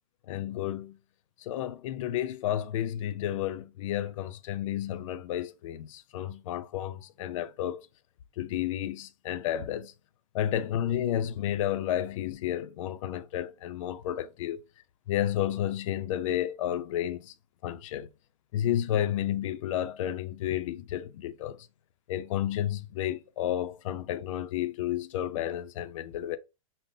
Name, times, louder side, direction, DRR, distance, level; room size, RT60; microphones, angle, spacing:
voice 1, 0.3-1.0 1.4-7.8 8.4-9.9 10.3-14.6 15.1-17.3 17.6-18.1 18.5-21.6 22.1-26.4, left 11 dB, 65° left, 0.4 m, -31 dB
5.4 x 2.0 x 2.6 m
supercardioid pair, 160°, 18 cm